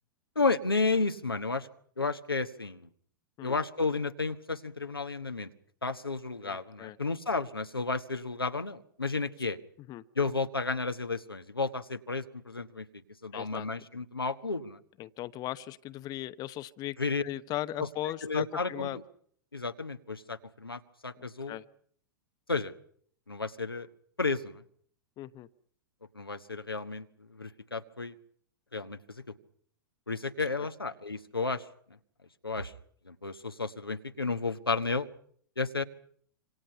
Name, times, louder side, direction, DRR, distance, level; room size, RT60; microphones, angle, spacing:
voice 1, 0.3-1.7 2.0-2.9 3.4-5.5 5.8-9.6 10.2-12.9 13.2-14.8 17.0-17.2 17.8-17.9 18.2-19.0 19.5-21.6 22.5-22.7 23.3-23.9 24.2-24.6 26.1-28.1 28.7-29.0 30.1-31.6 32.4-32.7 33.1-35.1 35.6-35.8, left 3 dB, 90° left, 8 dB, 1.2 m, -32 dB
voice 2, 6.4-7.0 9.9-10.0 13.3-13.7 15.0-17.0 17.2-19.0 21.2-21.6 25.2-25.5 30.6-30.7, left 14 dB, 35° left, 13 dB, 0.9 m, -38 dB
26.5 x 26.0 x 5.7 m, 0.63 s
figure-of-eight pair, 95°, 12 cm